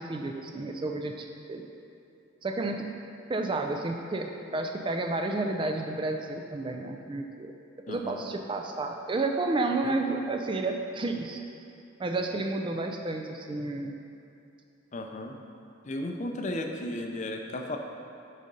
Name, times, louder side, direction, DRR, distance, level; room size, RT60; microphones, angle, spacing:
voice 1, 0.0-1.6 2.4-2.9 3.3-7.5 7.9-11.4 12.0-13.9, right 2 dB, 25° right, 4 dB, 0.3 m, -31 dB
voice 2, 7.9-8.2 9.8-10.0 14.9-15.4 15.8-17.8, left 1 dB, 35° left, 3 dB, 0.5 m, -34 dB
6.6 x 4.9 x 5.3 m, 2.7 s
head